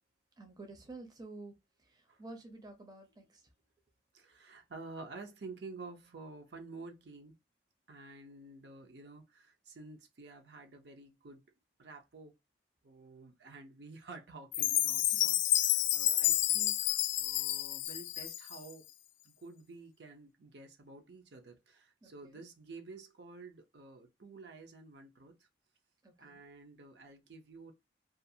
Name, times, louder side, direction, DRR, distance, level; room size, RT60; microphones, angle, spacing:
voice 1, 0.4-1.5 1.8-3.4 15.1-15.4 22.0-22.4 26.0-26.4, right 2 dB, 20° right, 0.6 m, -50 dB
voice 2, 4.1-7.4 7.9-11.4 11.8-12.3 12.8-18.9 19.2-25.5 26.2-27.7, right 3 dB, 65° right, 0.6 m, -50 dB
Chime, 14.5-18.7, left 13 dB, 80° left, 0.3 m, -30 dB
2.4 x 2.4 x 2.7 m
head